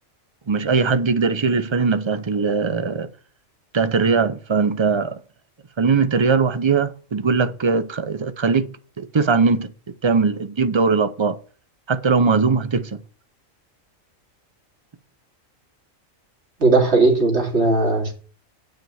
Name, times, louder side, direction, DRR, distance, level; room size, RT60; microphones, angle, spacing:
voice 1, 0.5-3.1 3.7-5.2 5.8-9.7 10.0-11.4 11.9-13.0, right 5 dB, 35° right, 0.5 m, -20 dB
voice 2, 16.6-18.1, right 3 dB, 50° right, 2.7 m, -17 dB
9.7 x 5.1 x 7.7 m
omnidirectional pair, 1.4 m